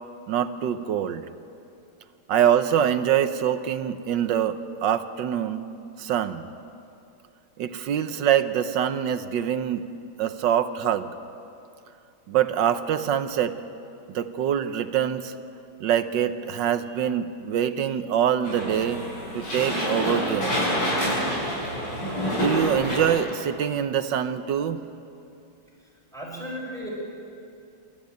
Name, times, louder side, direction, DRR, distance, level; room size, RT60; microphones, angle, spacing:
voice 1, 0.3-1.3 2.3-5.7 6.0-6.5 7.6-9.9 10.2-11.1 12.3-13.6 14.1-15.3 15.8-19.0 19.3-20.6 22.3-24.8, right 9 dB, 70° right, 10 dB, 1.4 m, -24 dB
sound 1, 18.4-23.1, equal, 70° left, 8.9 m, -27 dB
voice 2, 25.8-26.9, equal, ahead, -3 dB, 6.2 m, -36 dB
27.0 x 13.5 x 9.2 m, 2.7 s
omnidirectional pair, 2.2 m